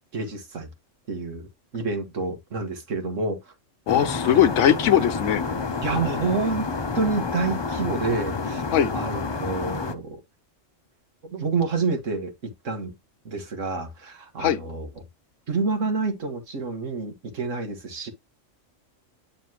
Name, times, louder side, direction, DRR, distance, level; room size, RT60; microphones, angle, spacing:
voice 1, 0.1-0.7 1.1-1.5 1.7-3.4 5.8-8.6 8.9-10.2 11.2-12.9 13.3-14.9 15.5-18.1, right 3 dB, 85° right, 1.9 m, -28 dB
voice 2, 3.9-5.4 8.7-8.9 14.4-14.6, left 9 dB, 75° left, 0.9 m, -20 dB
sound 1, 3.9-10.0, left 4 dB, 30° left, 0.5 m, -29 dB
9.5 x 4.0 x 3.0 m
omnidirectional pair, 1.3 m